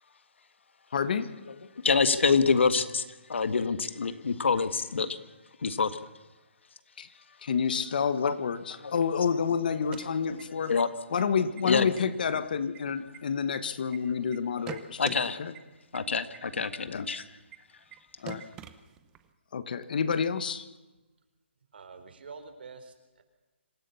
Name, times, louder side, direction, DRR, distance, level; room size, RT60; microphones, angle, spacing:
voice 1, 0.9-1.3 7.0-7.1 7.4-10.7 11.1-15.5 16.9-17.1 18.2-18.5 19.5-20.6, left 6 dB, 45° left, 12 dB, 1.4 m, -29 dB
voice 2, 1.8-5.2 5.6-6.0 8.2-8.4 8.8-8.9 9.7-10.9 11.6-11.9 15.0-15.4 15.9-17.2, left 5 dB, 75° left, 11 dB, 1.8 m, -27 dB
sound 1, 9.7-10.8 11.2-11.3 11.6-12.0 12.4-14.0 14.3-15.2 15.6-15.7 15.9-16.0 16.3-16.4 16.7-16.8 17.1-17.2 17.5-17.6 17.9-18.0 18.3-19.3, right 11 dB, 10° right, 0.8 m, -44 dB
voice 3, 21.7-23.2, right 4 dB, 60° right, 8 dB, 4.0 m, -47 dB
26.5 x 15.5 x 7.1 m, 1.1 s
hypercardioid pair, 170°, 6 cm